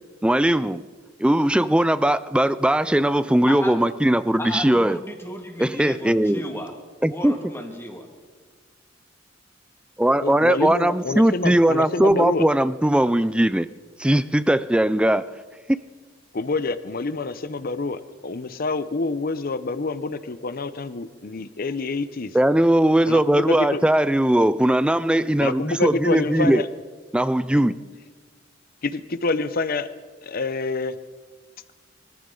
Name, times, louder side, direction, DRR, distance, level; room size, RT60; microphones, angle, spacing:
voice 1, 0.2-0.8 1.2-5.0 5.6-6.4 7.0-7.3 10.0-13.7 14.0-15.3 15.7-15.8 22.3-26.6 27.1-27.8, right 1 dB, 5° right, 0.3 m, -19 dB
voice 2, 3.5-3.8 4.4-6.7 7.1-8.1, equal, 15° left, 1.9 m, -34 dB
voice 3, 10.2-12.4 16.3-22.4 23.1-23.8 25.4-26.7 28.8-29.9 30.2-31.0, left 3 dB, 50° left, 0.7 m, -27 dB
23.5 x 14.0 x 3.8 m
head